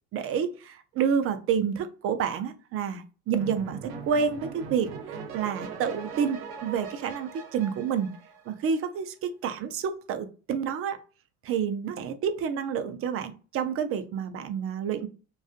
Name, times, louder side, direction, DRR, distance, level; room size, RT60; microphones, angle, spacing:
voice 1, 0.1-8.1 8.5-11.0 11.4-15.1, right 7 dB, 35° right, 9 dB, 0.5 m, -29 dB
sound 1, 3.4-8.8, right 5 dB, 75° right, 0.7 m, -40 dB
2.4 x 2.3 x 2.4 m, 0.34 s
hypercardioid pair, 85°, 41 cm